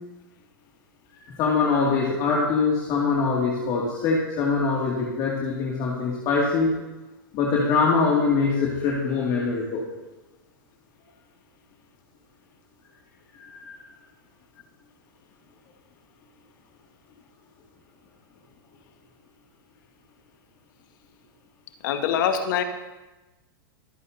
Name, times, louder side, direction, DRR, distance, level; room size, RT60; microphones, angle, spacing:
voice 1, 1.2-6.7 7.3-9.8 13.3-13.7, left 4 dB, 40° left, -4 dB, 2.2 m, -23 dB
voice 2, 21.8-22.6, left 8 dB, 60° left, 7 dB, 1.4 m, -23 dB
23.5 x 8.3 x 2.7 m, 1.1 s
hypercardioid pair, 125°, 12 cm